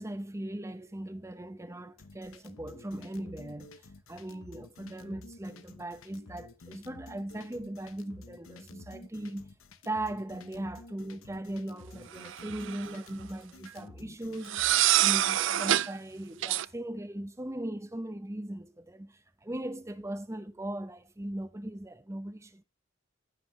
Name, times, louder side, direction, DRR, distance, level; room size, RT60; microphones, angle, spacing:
voice 1, 0.0-9.5 9.8-14.6 15.0-22.6, right 1 dB, 15° right, 0.7 m, -39 dB
sound 1, 2.0-14.9, left 2 dB, 80° left, 0.9 m, -51 dB
sound 2, 12.2-12.9 14.5-15.9 16.4-16.7, right 13 dB, 65° right, 0.4 m, -26 dB
15.0 x 5.4 x 3.2 m
head